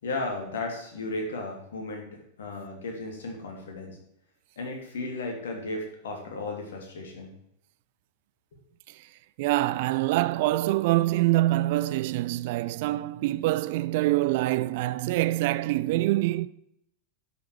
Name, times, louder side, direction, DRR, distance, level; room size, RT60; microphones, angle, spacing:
voice 1, 0.0-4.0 4.6-7.3, left 2 dB, 60° left, 3.1 m, -35 dB
voice 2, 9.4-16.5, right 17 dB, 50° right, 0.4 m, -25 dB
11.5 x 7.0 x 4.8 m
figure-of-eight pair, 90°, 0 cm